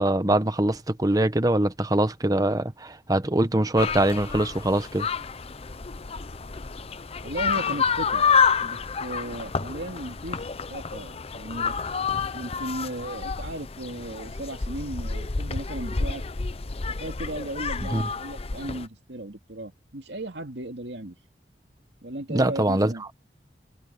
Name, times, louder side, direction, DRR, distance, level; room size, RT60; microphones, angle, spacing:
voice 1, 0.0-5.1 17.9-18.1 22.3-22.9, right 1 dB, 20° right, 1.1 m, -23 dB
sound 1, 3.8-18.9, left 5 dB, 35° left, 0.6 m, -29 dB
voice 2, 7.2-8.3 8.6-10.4 10.7-11.7 12.3-16.2 17.0-21.2 22.0-23.0, right 1 dB, 75° right, 2.4 m, -36 dB
head